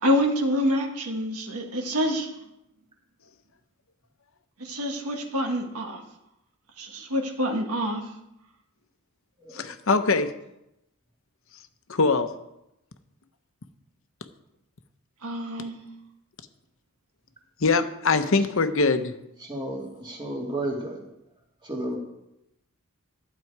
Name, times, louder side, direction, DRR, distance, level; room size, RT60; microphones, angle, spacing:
voice 1, 0.0-2.3 4.6-6.0 6.8-8.0 15.2-15.8, equal, 80° right, 4 dB, 1.6 m, -26 dB
voice 2, 9.5-10.3 11.9-12.3 17.6-19.1, left 4 dB, 60° left, 9 dB, 0.8 m, -22 dB
voice 3, 19.4-21.1 21.6-22.0, right 1 dB, 20° right, -1 dB, 2.0 m, -32 dB
12.0 x 8.3 x 4.7 m, 0.85 s
head